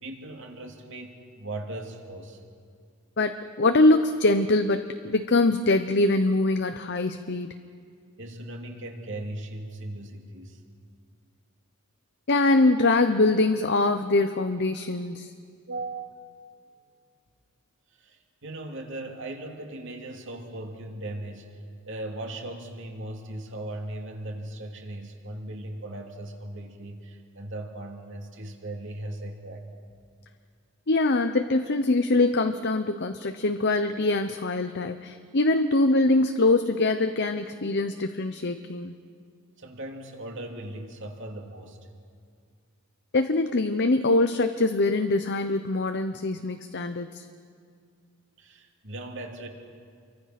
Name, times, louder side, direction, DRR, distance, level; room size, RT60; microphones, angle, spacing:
voice 1, 0.0-2.4 8.2-10.6 15.7-16.4 17.9-29.6 39.6-41.8 48.4-49.5, right 1 dB, 55° right, 2 dB, 2.8 m, -38 dB
voice 2, 3.2-7.6 12.3-15.3 30.9-38.9 43.1-47.2, left 2 dB, 50° left, 8 dB, 0.8 m, -23 dB
29.0 x 24.0 x 6.0 m, 2.2 s
head